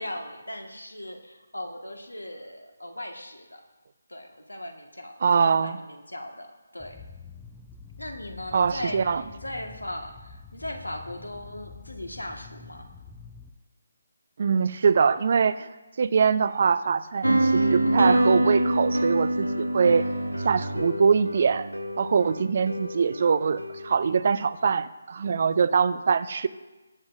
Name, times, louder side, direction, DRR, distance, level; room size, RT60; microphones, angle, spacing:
voice 1, 0.0-3.6 4.1-6.5 6.7-7.0 8.0-12.9, left 1 dB, 80° left, 4 dB, 1.6 m, -38 dB
voice 2, 5.2-5.8 8.5-9.2 14.4-15.7 16.0-20.0 20.4-21.7 22.0-26.5, right 6 dB, 40° right, 15 dB, 0.5 m, -23 dB
sound 1, 6.8-13.5, left 5 dB, 5° left, 0.6 m, -46 dB
sound 2, 17.2-24.1, right 1 dB, 80° right, 0.8 m, -26 dB
22.5 x 7.9 x 2.6 m, 1.2 s
figure-of-eight pair, 150°, 0 cm